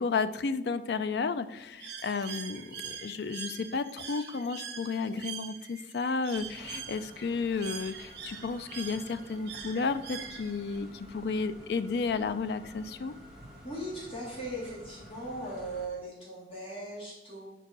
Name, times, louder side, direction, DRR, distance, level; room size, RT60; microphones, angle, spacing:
voice 1, 0.0-13.1, left 4 dB, 65° left, 12 dB, 0.4 m, -32 dB
Bird, 1.8-10.8, right 7 dB, 70° right, 1.0 m, -43 dB
sound 1, 6.3-15.9, equal, 5° right, 1.1 m, -51 dB
voice 2, 13.6-17.5, right 1 dB, 30° left, -6 dB, 2.1 m, -39 dB
4.8 x 4.6 x 6.0 m, 0.98 s
head